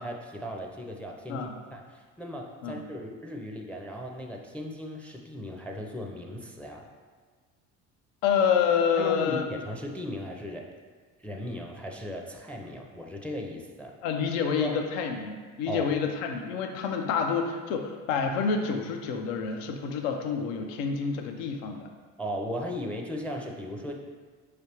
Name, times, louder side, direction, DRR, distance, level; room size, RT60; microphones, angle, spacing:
voice 1, 0.0-6.9 9.0-10.7 11.2-13.9 14.6-14.8 15.7-15.9 22.2-24.0, equal, 5° left, 1 dB, 0.4 m, -37 dB
voice 2, 8.2-9.5 14.0-21.9, left 6 dB, 85° left, 4 dB, 0.6 m, -28 dB
4.6 x 3.3 x 2.8 m, 1.5 s
supercardioid pair, 70°, 37 cm